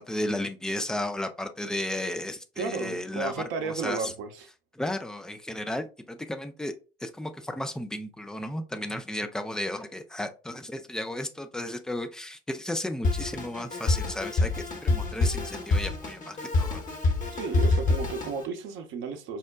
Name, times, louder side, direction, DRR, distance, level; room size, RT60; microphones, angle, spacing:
voice 1, 0.0-4.1 4.7-6.7 7.0-16.8, left 1 dB, ahead, 0.3 m, -34 dB
voice 2, 2.6-4.5 17.3-19.4, right 4 dB, 40° right, 0.7 m, -33 dB
Drum kit, 13.0-18.4, left 2 dB, 25° left, 0.9 m, -27 dB
5.5 x 2.1 x 2.3 m
figure-of-eight pair, 70°, 29 cm